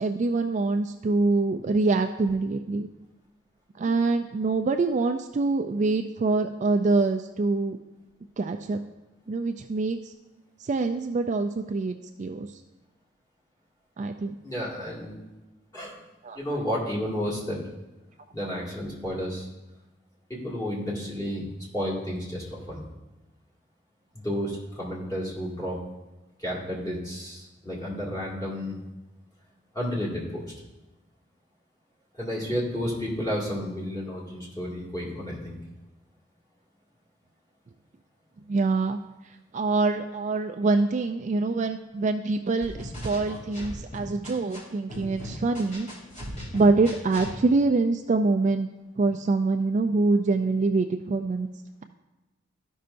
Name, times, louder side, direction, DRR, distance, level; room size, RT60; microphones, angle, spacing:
voice 1, 0.0-2.9 3.8-7.8 8.4-8.8 9.3-10.1 10.6-12.5 14.0-14.3 16.2-16.4 38.5-39.0 39.5-45.9 46.5-48.7 49.0-51.5, right 3 dB, 35° right, 6 dB, 0.3 m, -25 dB
voice 2, 14.4-15.1 15.7-16.0 16.3-17.6 18.3-19.5 20.3-21.4 21.7-22.8 24.1-25.8 26.4-28.8 29.7-30.5 32.1-35.6, equal, 15° left, -6 dB, 2.1 m, -31 dB
sound 1, 42.6-44.6 44.9-47.3, left 1 dB, 35° left, 2.8 m, -38 dB
13.5 x 5.5 x 2.6 m, 1.1 s
head